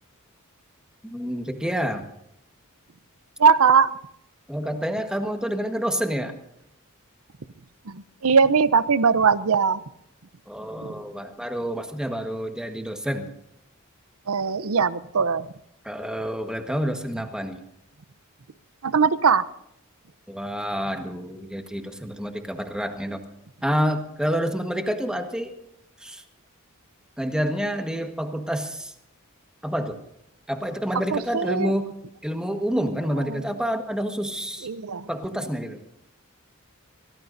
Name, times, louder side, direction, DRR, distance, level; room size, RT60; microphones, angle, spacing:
voice 1, 1.0-2.0 4.5-6.3 10.5-13.3 15.8-17.6 20.3-23.2 23.6-25.5 26.0-26.2 27.2-28.9 29.6-29.9 30.5-31.9 32.2-34.7 35.1-35.8, equal, 5° right, 5 dB, 1.5 m, -28 dB
voice 2, 3.4-3.9 7.9-9.8 10.8-11.0 14.3-15.5 18.8-19.5 31.1-31.7 33.2-33.4 34.6-35.1, right 5 dB, 80° right, 15 dB, 0.7 m, -20 dB
24.5 x 18.0 x 2.7 m, 0.78 s
head